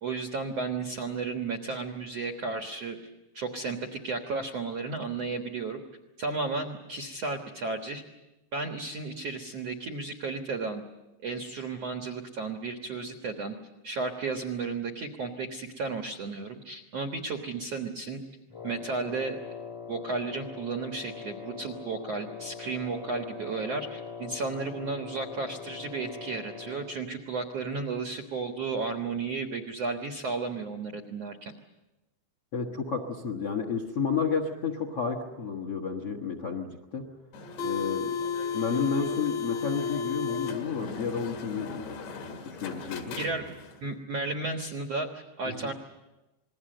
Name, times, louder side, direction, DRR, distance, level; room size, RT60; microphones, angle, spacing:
voice 1, 0.0-3.0 3.3-5.8 6.2-8.0 8.5-10.8 11.2-13.5 13.8-18.2 18.6-19.4 19.9-31.5 43.2-43.5 43.8-45.7, right 3 dB, 75° right, 4 dB, 1.4 m, -33 dB
Wind instrument woodwind instrument, 18.5-27.1, left 6 dB, 15° left, 0.7 m, -42 dB
voice 2, 32.5-37.0 37.6-38.1 38.5-42.0 42.4-43.2 45.4-45.7, left 5 dB, 60° left, 5 dB, 1.5 m, -31 dB
sound 1, 37.3-43.8, left 6 dB, 75° left, 4.1 m, -34 dB
28.0 x 20.5 x 7.8 m, 1.1 s
omnidirectional pair, 5.1 m